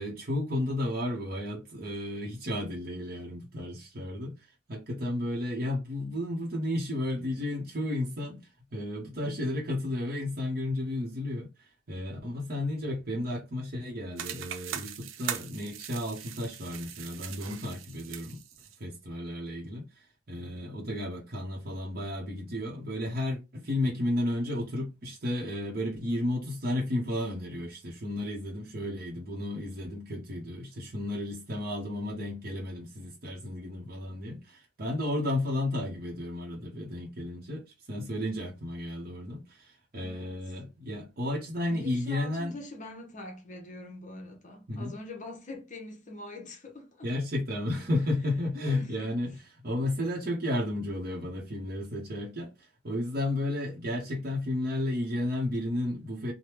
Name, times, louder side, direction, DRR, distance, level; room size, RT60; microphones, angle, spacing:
voice 1, 0.0-18.4 18.8-42.6 44.7-44.9 47.0-49.4 49.6-56.3, left 1 dB, 50° right, 0.8 m, -33 dB
sound 1, 14.2-18.8, right 9 dB, 85° right, 0.5 m, -40 dB
voice 2, 39.9-40.3 41.7-47.1 48.7-49.1 49.8-49.9, left 2 dB, 40° left, 0.8 m, -44 dB
3.3 x 2.1 x 2.9 m
head